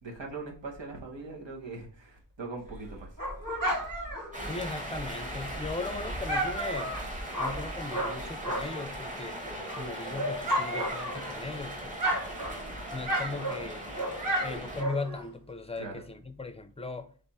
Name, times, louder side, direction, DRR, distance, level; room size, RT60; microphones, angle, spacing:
voice 1, 0.0-3.1 15.8-16.0, right 3 dB, 90° right, 1.2 m, -41 dB
Dog, 2.6-8.9 9.3-11.6 11.9-15.3, right 1 dB, 50° right, 1.9 m, -33 dB
sound 1, 4.3-14.8, right 1 dB, 20° right, 1.1 m, -39 dB
voice 2, 4.5-7.0 7.4-9.4 9.7-12.0 12.9-13.9 14.4-17.1, left 3 dB, 15° left, 0.4 m, -38 dB
3.4 x 3.3 x 4.2 m
wide cardioid pair, 75°, 43 cm